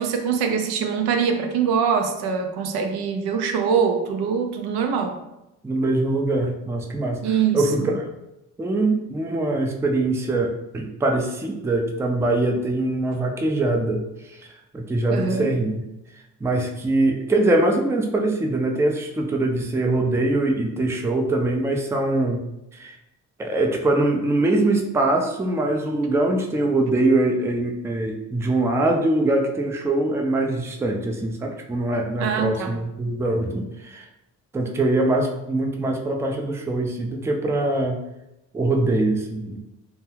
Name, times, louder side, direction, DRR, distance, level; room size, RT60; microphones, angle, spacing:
voice 1, 0.0-5.2 7.2-7.6 15.1-15.5 32.2-32.7, right 6 dB, 75° right, 5 dB, 0.5 m, -23 dB
voice 2, 5.6-8.1 8.6-15.8 16.4-22.4 22.7-23.0 23.4-34.1 34.5-38.0 38.5-39.6, right 2 dB, 5° right, 2 dB, 0.4 m, -23 dB
2.3 x 2.2 x 3.1 m, 0.91 s
supercardioid pair, 55°, 39 cm